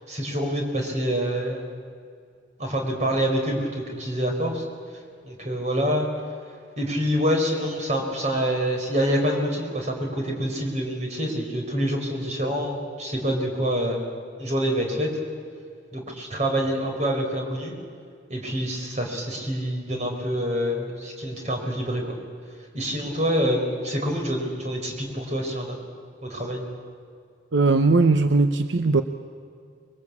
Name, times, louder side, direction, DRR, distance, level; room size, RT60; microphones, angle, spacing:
voice 1, 0.1-1.8 2.6-4.6 5.2-6.1 6.8-14.1 14.4-15.1 15.9-17.8 18.3-22.2 22.7-25.8 26.2-26.6, equal, 35° right, 1 dB, 4.7 m, -26 dB
voice 2, 27.5-29.0, right 3 dB, 75° right, 8 dB, 0.9 m, -19 dB
26.0 x 22.5 x 8.5 m, 2.2 s
head